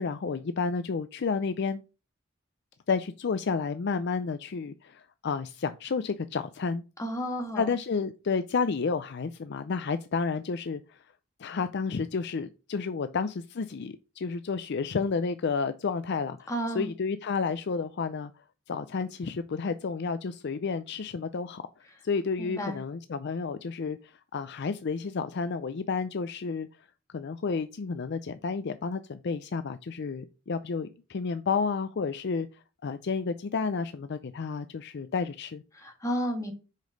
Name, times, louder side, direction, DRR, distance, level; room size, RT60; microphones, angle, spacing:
voice 1, 0.0-1.8 2.9-6.8 7.6-11.0 11.4-18.3 18.7-21.6 22.0-26.7 27.1-35.6, left 5 dB, 55° left, 0.5 m, -31 dB
voice 2, 7.0-7.7 16.5-16.9 22.4-22.8 35.7-36.5, equal, 15° left, 1.9 m, -32 dB
6.4 x 5.2 x 5.2 m
head